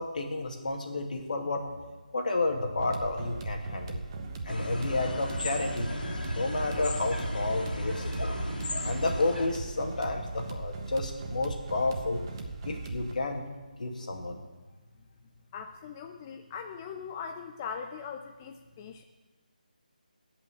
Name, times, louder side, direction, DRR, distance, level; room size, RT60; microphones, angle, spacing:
voice 1, 0.0-1.6 2.1-4.0 4.4-5.9 6.3-8.3 8.8-12.2 12.6-13.5 13.8-14.4, left 2 dB, 60° left, 2 dB, 2.3 m, -31 dB
sound 1, 2.8-13.1, right 3 dB, 30° right, 1.1 m, -39 dB
sound 2, 4.5-9.5, left 1 dB, 90° left, 2.8 m, -35 dB
voice 2, 15.5-19.0, left 6 dB, 20° left, 5 dB, 0.5 m, -40 dB
15.0 x 5.8 x 8.5 m, 1.2 s
figure-of-eight pair, 160°, 5 cm